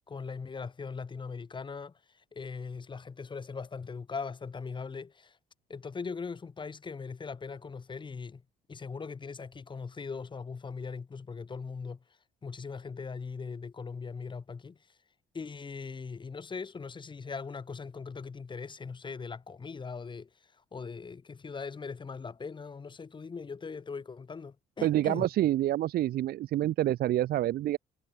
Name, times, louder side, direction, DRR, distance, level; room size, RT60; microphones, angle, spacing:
voice 1, 0.0-5.4 5.7-8.4 8.7-12.0 12.4-14.8 15.3-25.3, left 5 dB, 30° left, 5.1 m, -40 dB
voice 2, 24.8-27.8, right 13 dB, 65° right, 1.1 m, -27 dB
cardioid pair, 110°, 17 cm